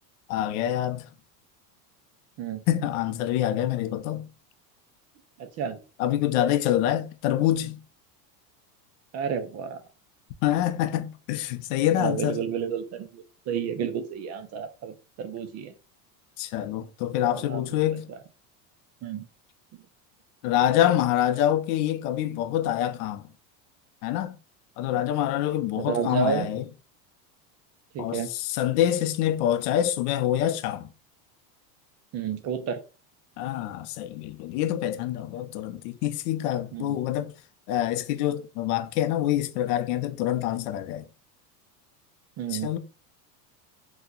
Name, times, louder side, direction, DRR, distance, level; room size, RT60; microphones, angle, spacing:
voice 1, 0.3-1.1 2.7-4.3 6.0-7.8 10.4-12.4 16.4-18.1 20.4-23.3 24.0-24.4 24.8-26.6 28.0-30.9 33.4-37.3 37.7-41.0 42.5-42.8, left 12 dB, 65° left, 0.7 m, -26 dB
voice 2, 5.4-5.8 9.1-9.8 11.9-15.7 17.3-17.8 18.1-18.2 19.0-19.3 25.7-26.5 27.9-28.3 32.1-32.8 36.7-37.0 42.4-42.7, right 7 dB, 35° right, 0.5 m, -31 dB
2.8 x 2.3 x 3.7 m
supercardioid pair, 120°, 50 cm